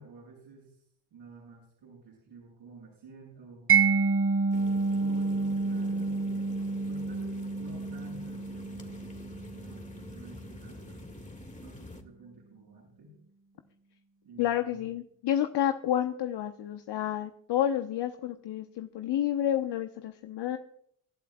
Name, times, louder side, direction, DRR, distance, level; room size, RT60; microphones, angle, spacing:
voice 1, 0.0-3.7 5.0-6.4 6.9-9.0 9.5-11.0 11.6-13.1 14.2-14.9, right 2 dB, 70° right, -5 dB, 7.1 m, -51 dB
Mallet percussion, 3.7-10.5, right 4 dB, 25° right, 1.1 m, -29 dB
sound 1, 4.5-12.0, left 2 dB, 15° left, 2.1 m, -47 dB
voice 2, 14.4-20.6, left 11 dB, 55° left, 8 dB, 1.0 m, -30 dB
25.5 x 12.0 x 2.4 m, 0.67 s
hypercardioid pair, 50°, 48 cm